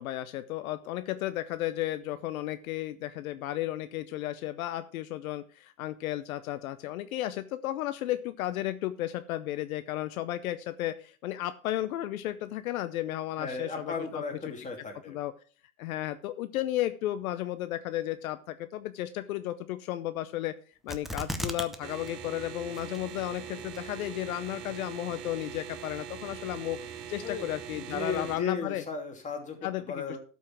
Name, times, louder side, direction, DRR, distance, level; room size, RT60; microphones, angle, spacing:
voice 1, 0.0-14.2 15.1-15.3 15.8-20.5 20.8-26.8 27.1-28.8 29.6-29.8, left 14 dB, 65° left, 12 dB, 0.8 m, -33 dB
voice 2, 13.4-15.2 27.2-27.5 27.7-30.2, left 4 dB, 15° left, 3 dB, 2.8 m, -36 dB
Card Shuffle, 20.9-21.8 22.1-22.2 22.7-23.2 23.7-23.8, equal, ahead, 0.6 m, -34 dB
sound 1, 21.8-28.4, right 8 dB, 50° right, 2.1 m, -42 dB
12.5 x 5.6 x 5.9 m, 0.40 s
hypercardioid pair, 120°, 45 cm